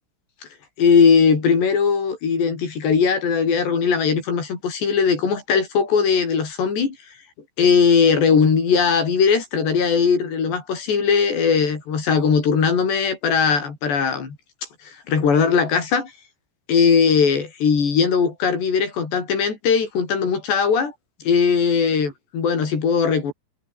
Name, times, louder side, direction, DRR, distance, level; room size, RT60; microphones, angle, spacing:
voice 1, 0.8-7.0 7.6-14.4 15.1-16.1 16.7-20.9 21.3-23.3, left 6 dB, 55° left, 7.3 m, -19 dB
omnidirectional pair, 6.0 m